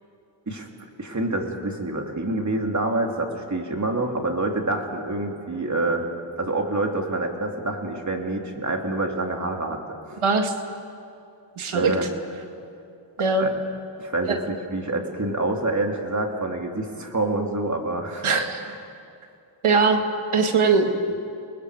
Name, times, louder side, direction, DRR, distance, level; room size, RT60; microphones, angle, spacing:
voice 1, 1.0-6.0 6.4-9.8 10.1-10.2 11.7-12.1 13.4-13.5 14.0-18.4 18.7-18.8, right 2 dB, 35° right, 2 dB, 3.0 m, -27 dB
voice 2, 10.2-10.5 11.6-11.9 13.2-13.5 14.2-14.4 18.2-18.6 19.6-20.0 20.3-20.9, right 4 dB, 85° right, 5 dB, 1.9 m, -20 dB
29.5 x 20.0 x 5.0 m, 2.5 s
cardioid pair, 55°, 48 cm